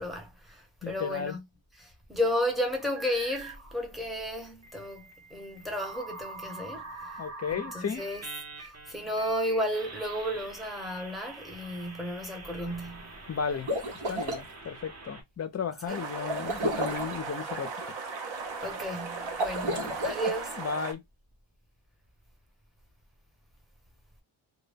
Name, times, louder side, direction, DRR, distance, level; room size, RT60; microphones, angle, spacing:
voice 1, 0.0-1.4 1.8-5.0 5.3-7.2 7.5-8.2 8.6-13.2 15.9-16.0 18.6-20.6, equal, ahead, 0.7 m, -33 dB
voice 2, 0.8-1.4 7.2-8.0 13.3-13.7 14.1-17.9 19.7-20.0 20.6-21.0, left 6 dB, 35° left, 0.4 m, -34 dB
sound 1, 2.8-3.7 4.6-15.2, right 3 dB, 35° right, 0.7 m, -45 dB
sound 2, 13.5-14.4 16.3-17.2 19.3-20.4, right 1 dB, 85° right, 0.9 m, -32 dB
sound 3, 15.9-20.9, right 4 dB, 65° right, 0.8 m, -37 dB
2.2 x 2.1 x 3.2 m
wide cardioid pair, 130°, 48 cm